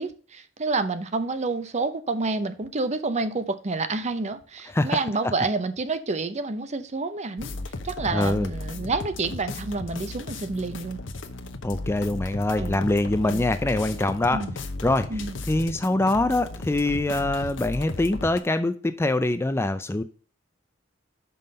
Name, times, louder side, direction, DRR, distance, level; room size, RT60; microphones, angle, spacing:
voice 1, 0.0-7.5 7.8-11.0 12.6-12.8 13.2-13.5 14.3-14.5 15.1-15.4, right 3 dB, 35° right, 0.7 m, -29 dB
sound 1, 7.4-18.4, left 2 dB, 70° left, 0.8 m, -35 dB
voice 2, 8.1-8.5 11.6-14.4 14.8-15.1 15.5-20.0, left 2 dB, 15° left, 0.4 m, -24 dB
5.8 x 5.5 x 5.3 m
head